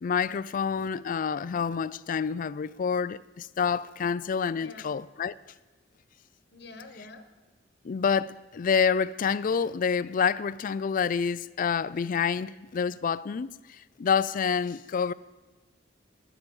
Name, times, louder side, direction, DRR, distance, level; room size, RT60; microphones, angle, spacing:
voice 1, 0.0-5.3 7.8-15.1, left 6 dB, 45° left, 0.4 m, -28 dB
voice 2, 4.6-4.9 6.5-7.3, left 3 dB, 65° left, 1.2 m, -46 dB
12.5 x 10.0 x 7.0 m
head